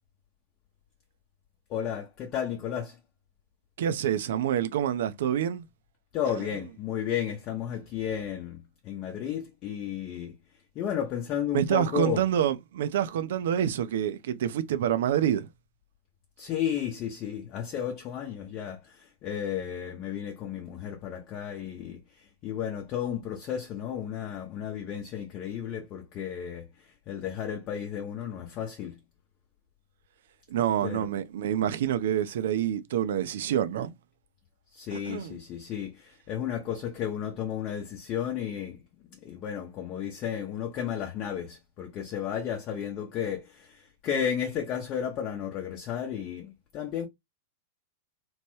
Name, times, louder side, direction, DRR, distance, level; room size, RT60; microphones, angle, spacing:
voice 1, 1.7-3.0 6.1-10.4 10.7-12.2 16.4-29.0 30.8-31.1 34.7-38.8 39.2-47.1, left 9 dB, 40° left, 0.7 m, -33 dB
voice 2, 3.8-5.7 11.5-15.5 30.5-33.9 34.9-35.4, right 10 dB, 70° right, 0.4 m, -27 dB
3.0 x 2.2 x 3.0 m
hypercardioid pair, 105°, 0 cm